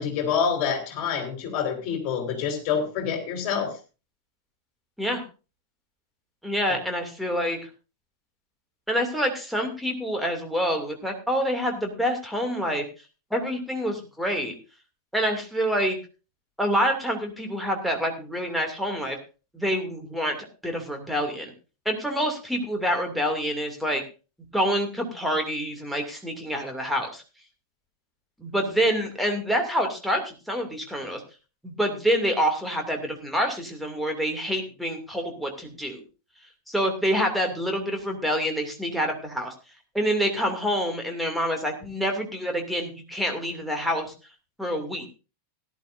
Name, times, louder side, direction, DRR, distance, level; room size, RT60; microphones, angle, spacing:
voice 1, 0.0-3.8, left 7 dB, 40° left, 3 dB, 3.9 m, -27 dB
voice 2, 6.4-7.6 8.9-12.8 13.3-14.5 15.1-16.0 16.6-19.2 19.5-20.4 20.6-21.5 21.8-24.0 24.5-27.2 28.4-31.2 31.6-36.0 36.7-39.5 39.9-44.1 44.6-45.1, equal, ahead, 3 dB, 2.6 m, -27 dB
17.0 x 11.5 x 2.6 m, 0.32 s
figure-of-eight pair, 90°, 0 cm